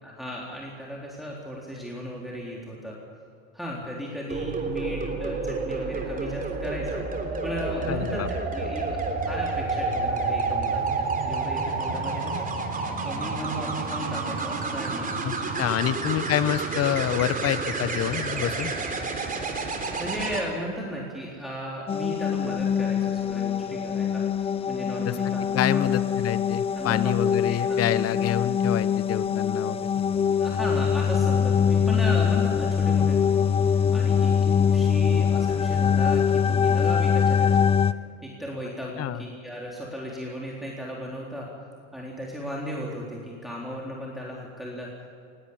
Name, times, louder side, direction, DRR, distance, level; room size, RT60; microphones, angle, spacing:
voice 1, 0.0-3.0 3.5-8.2 8.5-12.5 13.0-15.5 15.8-15.9 19.9-25.8 26.8-27.1 27.5-27.8 30.4-37.7 38.2-41.5 41.9-44.9, equal, ahead, -4 dB, 3.8 m, -36 dB
sound 1, 4.3-20.4 22.3-22.6, right 3 dB, 20° right, 3.6 m, -29 dB
voice 2, 7.9-8.3 15.2-18.7 25.0-25.2 25.5-29.9 39.0-39.2, left 11 dB, 35° left, 15 dB, 1.0 m, -27 dB
sound 2, 21.9-37.9, left 7 dB, 15° left, 0.4 m, -23 dB
19.5 x 18.0 x 8.8 m, 2.4 s
hypercardioid pair, 95°, 40 cm